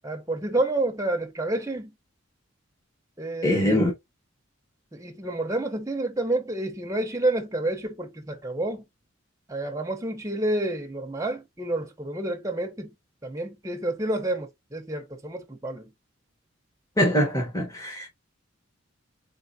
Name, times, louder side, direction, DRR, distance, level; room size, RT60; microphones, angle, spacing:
voice 1, 0.0-1.9 3.2-3.8 4.9-8.8 9.5-12.9 13.2-15.9, right 2 dB, 15° right, 0.7 m, -29 dB
voice 2, 3.4-3.9 17.0-18.1, left 1 dB, 15° left, 1.1 m, -23 dB
4.0 x 3.7 x 2.6 m
head